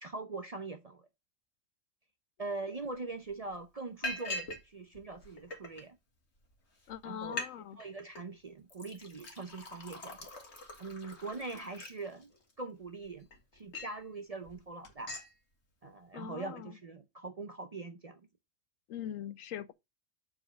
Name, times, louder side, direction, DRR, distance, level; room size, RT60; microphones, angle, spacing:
voice 1, 0.0-1.1 2.4-6.0 7.0-7.4 7.8-10.3 10.8-12.3 12.6-13.3 13.5-15.1 15.8-18.2, right 3 dB, 40° right, 0.5 m, -42 dB
Liquid, 2.9-3.0 3.3-3.5 4.0-4.6 4.9-5.8 6.5-6.6 6.9-7.0 7.2-7.5 7.8-8.2 8.7-12.5 13.0-14.0 14.4-14.6 14.8-15.3, left 2 dB, 60° left, 1.9 m, -42 dB
voice 2, 6.9-7.8 16.1-16.8 18.9-19.7, left 10 dB, 80° left, 1.0 m, -42 dB
6.9 x 4.3 x 5.0 m
omnidirectional pair, 1.3 m